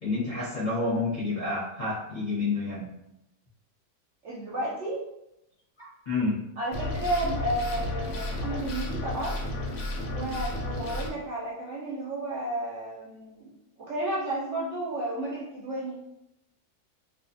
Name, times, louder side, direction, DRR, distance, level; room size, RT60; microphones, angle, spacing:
voice 1, 0.0-2.9 5.8-6.4, left 3 dB, 40° left, -9 dB, 0.7 m, -29 dB
voice 2, 4.2-5.0 6.6-9.4 10.1-16.0, right 1 dB, 65° right, -6 dB, 0.7 m, -32 dB
sound 1, 6.7-11.1, left 1 dB, 90° left, 1.1 m, -32 dB
2.4 x 2.4 x 2.5 m, 0.85 s
omnidirectional pair, 1.6 m